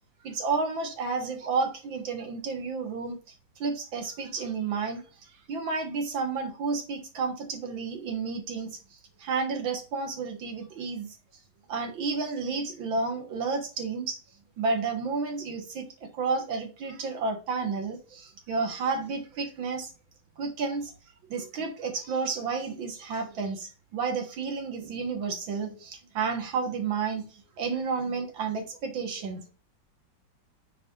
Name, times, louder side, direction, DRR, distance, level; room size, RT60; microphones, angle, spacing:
voice 1, 0.2-3.2 3.6-5.0 5.5-8.8 9.2-11.1 11.7-14.2 14.6-15.9 16.2-19.9 20.4-20.9 21.3-27.3 27.6-29.4, right 4 dB, 80° right, 2.3 m, -31 dB
9.0 x 4.9 x 2.6 m
omnidirectional pair, 2.1 m